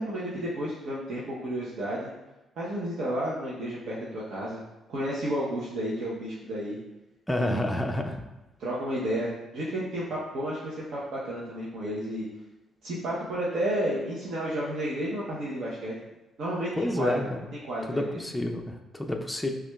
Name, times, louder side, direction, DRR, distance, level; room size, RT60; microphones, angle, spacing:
voice 1, 0.0-2.1 2.6-4.6 4.9-6.8 7.4-7.7 8.6-12.3 12.8-15.9 16.4-17.3 17.6-18.2, right 1 dB, 70° right, -7 dB, 0.7 m, -32 dB
voice 2, 7.3-8.2 16.8-17.5 17.9-19.5, left 1 dB, 5° left, 3 dB, 0.4 m, -29 dB
5.9 x 2.4 x 2.2 m, 1.0 s
cardioid pair, 90°, 0 cm